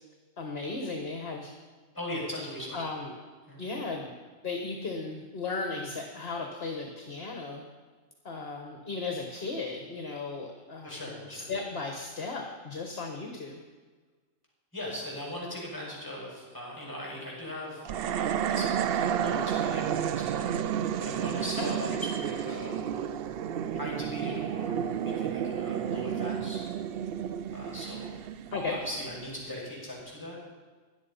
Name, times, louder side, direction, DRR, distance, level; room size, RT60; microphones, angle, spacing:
voice 1, 0.4-1.5 2.7-3.1 3.6-4.2 4.4-7.6 8.2-13.6 21.6-21.9 22.5-22.6 28.5-28.8, left 3 dB, 50° left, 2 dB, 1.5 m, -36 dB
voice 2, 1.9-2.8 3.5-3.6 10.8-11.5 14.7-17.8 18.2-22.8 23.7-26.6 27.5-28.1 28.7-30.4, left 1 dB, 15° left, -4 dB, 6.1 m, -39 dB
sound 1, 17.9-29.2, right 9 dB, 60° right, 0.7 m, -31 dB
16.0 x 11.5 x 5.5 m, 1.4 s
omnidirectional pair, 1.3 m